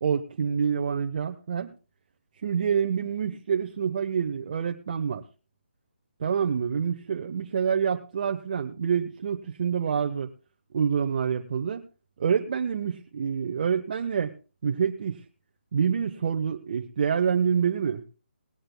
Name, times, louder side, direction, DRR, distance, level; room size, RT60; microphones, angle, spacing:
voice 1, 0.0-1.7 2.4-5.2 6.2-10.3 10.7-11.8 12.2-14.3 14.6-15.2 15.7-18.0, right 7 dB, 45° right, 5 dB, 0.8 m, -27 dB
19.0 x 16.0 x 2.2 m, 0.33 s
hypercardioid pair, 160°, 6 cm